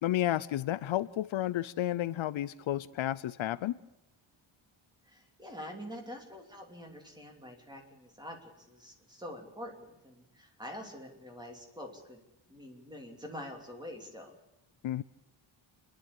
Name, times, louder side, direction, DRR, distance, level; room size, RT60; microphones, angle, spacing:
voice 1, 0.0-3.8 14.8-15.0, left 13 dB, 70° left, 16 dB, 0.6 m, -31 dB
voice 2, 5.0-12.2 12.5-14.3, left 1 dB, 10° right, 2 dB, 3.0 m, -46 dB
29.0 x 11.5 x 8.5 m, 0.92 s
wide cardioid pair, 175°, 49 cm